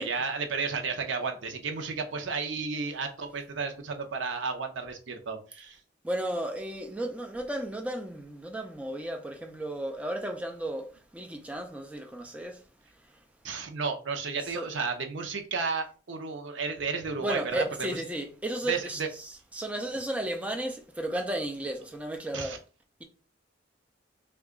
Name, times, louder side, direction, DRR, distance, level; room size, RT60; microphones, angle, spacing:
voice 1, 0.0-5.8 13.4-18.0 18.7-19.1 22.3-22.6, right 4 dB, 85° right, 0.6 m, -33 dB
voice 2, 6.0-12.6 13.0-13.2 14.4-14.7 17.2-22.6, right 1 dB, 5° right, 0.3 m, -34 dB
2.9 x 2.3 x 3.6 m
head